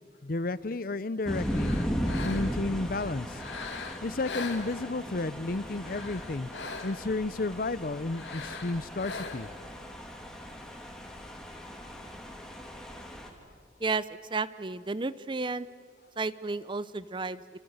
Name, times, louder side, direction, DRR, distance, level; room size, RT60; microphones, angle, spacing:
voice 1, 0.2-1.8 2.2-3.4 4.0-6.5 6.8-9.5, left 2 dB, 50° left, 18 dB, 0.7 m, -32 dB
sound 1, 1.2-2.7 3.3-5.2 5.7-7.2 8.1-9.7, left 4 dB, 80° left, 2.3 m, -41 dB
sound 2, 1.2-13.3, equal, 5° left, 2.7 m, -37 dB
voice 2, 13.8-15.7 16.2-17.6, right 3 dB, 25° right, 16 dB, 0.6 m, -32 dB
28.0 x 26.5 x 8.0 m, 2.2 s
head